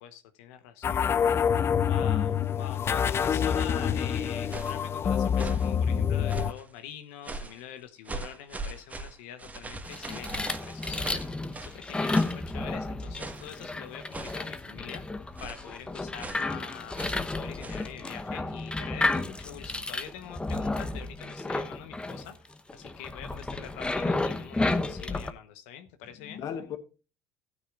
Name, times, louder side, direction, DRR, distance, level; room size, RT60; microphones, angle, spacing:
voice 1, 0.0-1.4 1.8-15.0 15.4-26.4, left 10 dB, 80° left, 1.1 m, -45 dB
sound 1, 0.8-6.5, left 8 dB, 35° left, 0.5 m, -26 dB
voice 2, 2.0-2.7 26.1-26.8, left 7 dB, 55° left, 1.5 m, -37 dB
sound 2, 4.2-4.8 5.3-5.7 6.3-6.7 7.2-7.6 8.0-11.8 12.1-12.4 13.2-13.5 14.1-14.5 15.4-15.7 16.2-16.5 16.9-17.2 17.6-17.9, right 2 dB, 20° right, 1.6 m, -40 dB
sound 3, 9.8-25.3, left 2 dB, 15° left, 0.9 m, -32 dB
15.0 x 9.6 x 2.5 m
supercardioid pair, 80°, 7 cm